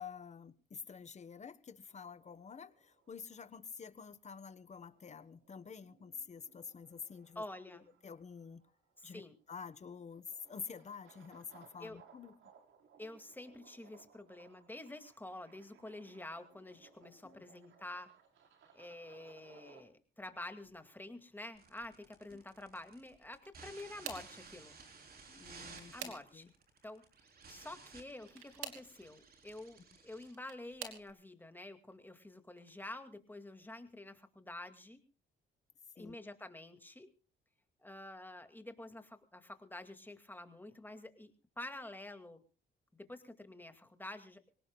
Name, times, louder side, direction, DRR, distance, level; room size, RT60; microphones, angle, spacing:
voice 1, 0.0-7.4 8.0-8.6 9.0-12.3 17.1-17.4 22.3-22.4 25.3-26.5 36.0-36.2, left 6 dB, 35° left, 13 dB, 1.2 m, -49 dB
sound 1, 1.9-19.8, right 6 dB, 75° right, 4.1 m, -65 dB
voice 2, 7.4-7.9 9.0-9.4 11.8-12.0 13.0-18.1 18.7-24.8 25.9-26.5 26.8-27.0 27.5-35.0 36.0-37.1 37.8-41.3 41.6-42.4 42.9-44.5, left 1 dB, 10° left, 7 dB, 2.2 m, -48 dB
sound 2, 21.5-31.1, right 4 dB, 50° right, 4.0 m, -56 dB
sound 3, 23.3-24.4 25.3-26.6 28.2-28.9 30.0-31.1 31.8-32.2 32.6-32.7 34.1-34.2, right 8 dB, 90° right, 3.0 m, -48 dB
26.0 x 18.0 x 2.3 m, 0.35 s
cardioid pair, 90°, 20 cm